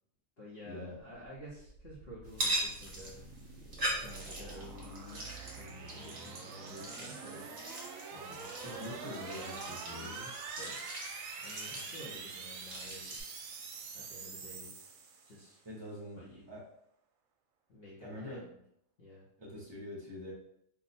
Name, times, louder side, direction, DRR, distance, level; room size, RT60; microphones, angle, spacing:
voice 1, 0.4-3.2 4.0-5.2 5.6-7.5 8.1-10.8 11.4-13.3 13.9-14.7 15.3-15.6 16.2-16.4 17.7-18.6 19.0-19.3, equal, 50° left, -6 dB, 0.8 m, -51 dB
sound 1, 1.1-15.5, right 5 dB, 70° right, 0.9 m, -46 dB
sound 2, 2.3-13.2, right 1 dB, 45° right, 1.0 m, -41 dB
voice 2, 8.6-10.2 15.6-16.2 16.5-16.6 18.0-18.5 19.4-20.3, left 1 dB, 30° right, -4 dB, 0.6 m, -44 dB
2.7 x 2.1 x 4.0 m, 0.72 s
omnidirectional pair, 1.5 m